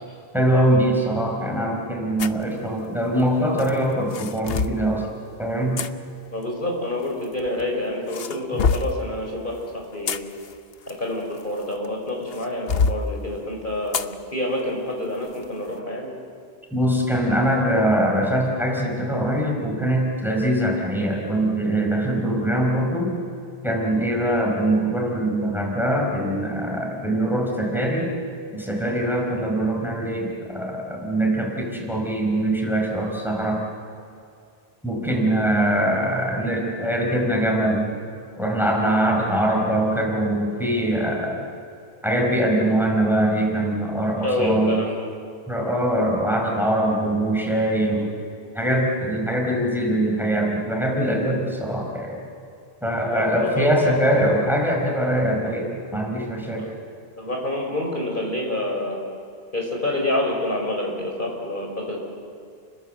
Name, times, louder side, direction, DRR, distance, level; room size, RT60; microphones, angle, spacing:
voice 1, 0.3-5.1 5.4-5.9 16.7-23.2 23.6-28.1 28.5-33.6 34.8-37.9 38.4-41.4 42.0-44.8 45.5-48.1 48.5-52.2 52.8-56.7, right 1 dB, ahead, 0 dB, 5.0 m, -22 dB
sound 1, 2.2-2.4 3.6-4.8 5.8-5.9 7.0-7.6 8.1-9.0 9.8-11.9 12.3-13.0 13.9-14.1 14.6-14.7 15.3-15.5, left 5 dB, 70° left, 1.1 m, -26 dB
voice 2, 6.3-10.2 10.9-16.1 44.2-45.1 53.1-54.1 56.6-56.7 57.2-59.0 59.5-62.1, left 1 dB, 55° left, 0 dB, 5.5 m, -27 dB
30.0 x 21.5 x 7.9 m, 2.5 s
omnidirectional pair, 1.0 m